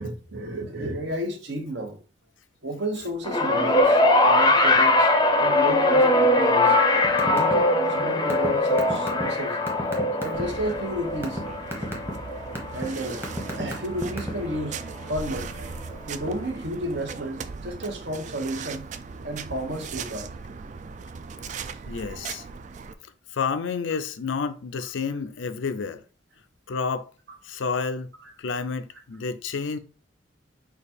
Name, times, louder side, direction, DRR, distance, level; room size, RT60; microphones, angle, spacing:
voice 1, 0.0-2.0 2.6-5.1 5.4-6.8 7.2-9.6 10.2-11.4 11.8-11.9 12.7-13.2 13.6-14.8 15.1-15.5 16.1-18.9 19.2-20.3, right 1 dB, 65° right, 1.0 m, -32 dB
sound 1, 3.2-13.7 14.7-14.8, left 2 dB, 20° left, 0.5 m, -21 dB
sound 2, 7.0-7.6 7.8-10.4 10.9-11.4 11.7-12.1 12.6-12.8 13.2-14.5, equal, 15° right, 1.0 m, -31 dB
sound 3, 10.3-22.9, right 5 dB, 40° right, 0.3 m, -38 dB
voice 2, 21.9-22.4 23.3-26.0 26.7-27.1 27.4-28.1 28.4-29.8, left 5 dB, 85° left, 0.5 m, -29 dB
5.0 x 2.4 x 4.3 m
head